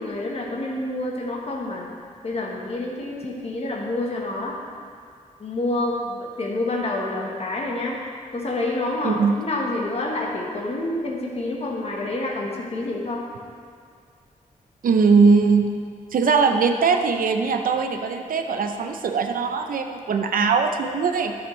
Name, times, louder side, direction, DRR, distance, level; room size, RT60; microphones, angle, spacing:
voice 1, 0.0-1.9 2.2-4.6 5.4-8.0 8.3-13.2, left 2 dB, 45° left, -2 dB, 1.2 m, -28 dB
voice 2, 14.8-15.7 16.1-21.4, right 5 dB, 90° right, 5 dB, 0.6 m, -20 dB
11.0 x 7.1 x 3.2 m, 2.1 s
wide cardioid pair, 150°, 14 cm